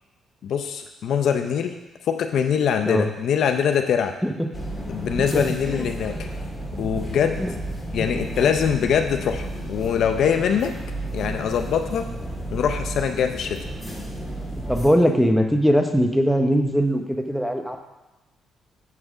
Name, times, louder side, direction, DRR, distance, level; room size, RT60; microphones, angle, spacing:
voice 1, 0.4-1.8 2.1-4.1 4.9-6.3 6.8-7.4 7.9-10.7 11.1-12.1 12.5-13.6, left 7 dB, 70° left, 6 dB, 0.6 m, -23 dB
sound 1, 4.5-14.9, right 1 dB, 20° left, 1.6 m, -32 dB
voice 2, 5.3-5.9 7.4-7.5 14.7-17.8, equal, ahead, 4 dB, 0.9 m, -21 dB
8.2 x 3.6 x 6.2 m, 1.1 s
cardioid pair, 90°, 0 cm